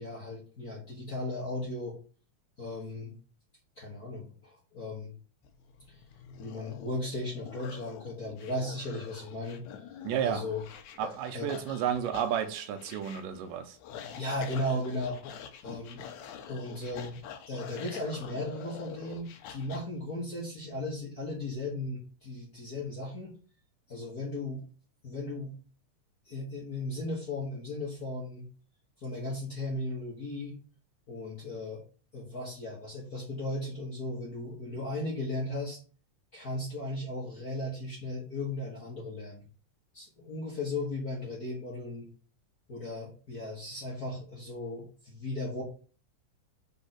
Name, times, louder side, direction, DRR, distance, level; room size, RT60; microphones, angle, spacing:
voice 1, 0.0-2.0 2.6-3.1 3.8-5.1 5.9-6.0 6.4-9.6 10.2-10.6 11.3-11.5 14.2-15.2 15.6-16.0 16.5-17.2 17.5-23.3 23.9-24.6 25.0-25.5 26.2-28.5 29.0-30.6 31.1-31.8 32.1-35.8 36.3-39.4 39.9-42.1 42.7-45.6, left 1 dB, 40° left, -4 dB, 1.4 m, -36 dB
sound 1, 5.4-19.8, left 8 dB, 75° left, 2.0 m, -46 dB
voice 2, 10.0-10.4 11.0-13.8, right 9 dB, 85° right, 8 dB, 2.4 m, -32 dB
5.3 x 3.9 x 5.8 m, 0.39 s
omnidirectional pair, 3.8 m